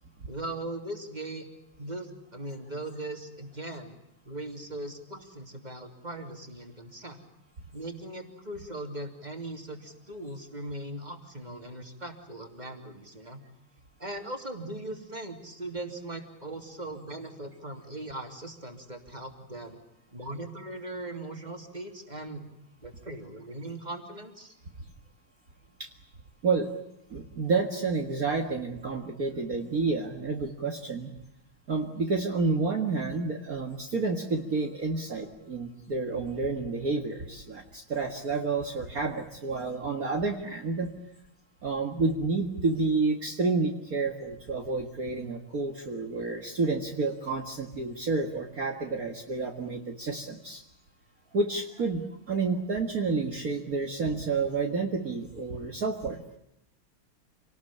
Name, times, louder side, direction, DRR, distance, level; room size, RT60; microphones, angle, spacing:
voice 1, 0.3-1.5 1.8-3.9 4.2-7.2 7.7-13.4 14.0-19.8 20.1-22.5 22.8-24.5, right 1 dB, 20° right, 5 dB, 3.0 m, -39 dB
voice 2, 27.1-31.1 31.7-40.9 41.6-50.6 51.3-56.2, right 3 dB, 40° right, 3 dB, 2.1 m, -30 dB
27.5 x 19.0 x 8.6 m, 0.84 s
omnidirectional pair, 2.4 m